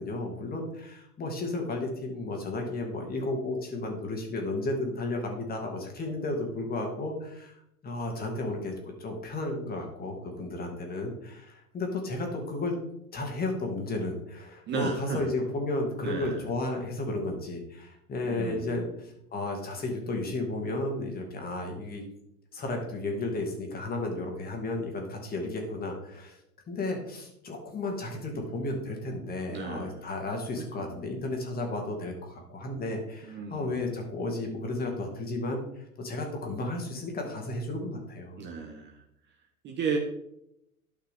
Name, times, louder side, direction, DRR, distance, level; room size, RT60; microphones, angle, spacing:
voice 1, 0.0-7.6 7.8-12.7 13.1-22.0 22.5-26.4 26.7-35.6 36.0-38.4, left 2 dB, 20° left, 2 dB, 2.1 m, -33 dB
voice 2, 14.7-15.3 16.0-16.5 18.2-18.7 29.5-30.0 30.8-31.0 33.2-33.9 38.4-39.0 39.6-40.0, right 5 dB, 25° right, 2 dB, 1.0 m, -34 dB
12.0 x 5.7 x 3.6 m, 0.79 s
hypercardioid pair, 105°, 44 cm